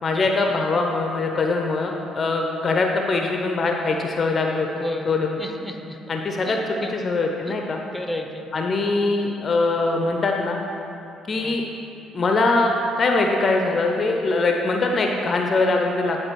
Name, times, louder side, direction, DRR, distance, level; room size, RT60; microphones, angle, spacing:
voice 1, 0.0-4.7 5.1-5.3 6.1-6.6 6.9-7.8 8.5-10.6 11.3-11.6 12.1-16.2, left 3 dB, 40° left, 2 dB, 0.6 m, -22 dB
voice 2, 4.7-5.1 5.4-6.0 6.4-6.9 7.9-8.5 11.4-11.6, left 1 dB, 10° left, 4 dB, 0.8 m, -32 dB
10.0 x 3.7 x 4.5 m, 2.8 s
figure-of-eight pair, 50°, 0 cm